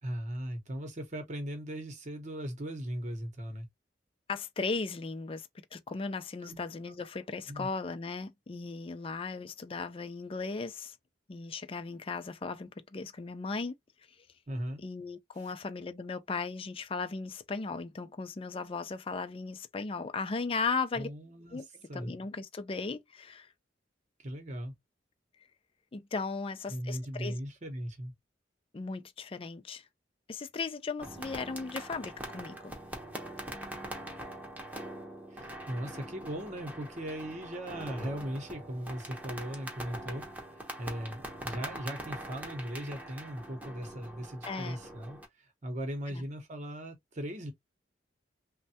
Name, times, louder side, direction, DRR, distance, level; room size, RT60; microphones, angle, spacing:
voice 1, 0.0-3.7 6.4-6.6 7.5-7.7 14.5-14.8 15.3-15.5 20.9-22.1 24.2-24.7 26.7-28.1 35.3-40.2 40.5-47.5, equal, 40° right, 0.9 m, -38 dB
voice 2, 4.3-11.0 11.3-13.7 14.8-21.1 21.5-21.7 21.9-23.5 25.9-27.3 28.7-29.9 30.3-32.7 44.5-44.8 46.1-46.2, left 4 dB, 30° left, 0.4 m, -37 dB
sound 1, 31.0-45.3, right 1 dB, 10° right, 0.8 m, -43 dB
3.2 x 2.1 x 2.8 m
head